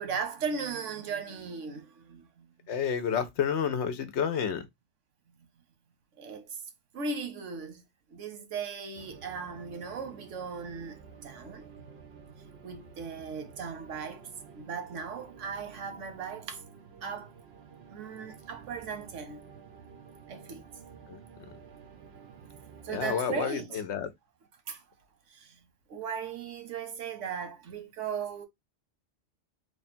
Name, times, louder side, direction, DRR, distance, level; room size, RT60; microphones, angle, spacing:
voice 1, 0.0-2.5 6.2-6.6 6.9-7.8 8.1-11.7 12.6-14.3 14.5-16.6 17.0-17.3 17.9-19.4 20.3-20.7 22.8-23.8 24.7-24.8 25.3-25.6 25.9-28.4, right 5 dB, 80° right, 1.2 m, -37 dB
voice 2, 2.7-4.7 21.1-21.2 22.9-24.1, left 7 dB, 70° left, 1.0 m, -30 dB
sound 1, 8.9-23.1, right 6 dB, 60° right, 1.0 m, -51 dB
3.3 x 2.3 x 4.2 m
omnidirectional pair, 1.2 m